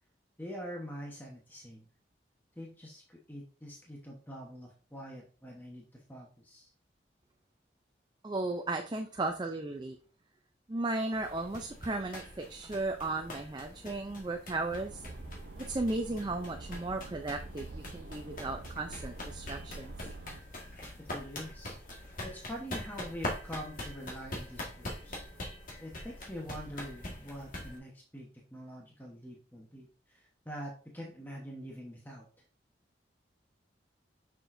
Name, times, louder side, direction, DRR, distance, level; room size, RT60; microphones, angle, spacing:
voice 1, 0.4-1.9 2.6-6.7 21.0-21.8 22.2-25.2 25.8-32.3, equal, 10° left, -1 dB, 1.0 m, -45 dB
voice 2, 8.2-10.0 10.7-15.0 15.6-19.9, right 2 dB, 25° right, 4 dB, 0.4 m, -35 dB
sound 1, 11.1-27.8, left 1 dB, 50° left, 1.7 m, -44 dB
sound 2, 14.7-20.4, right 2 dB, 80° right, 0.6 m, -46 dB
6.9 x 6.0 x 2.6 m, 0.38 s
head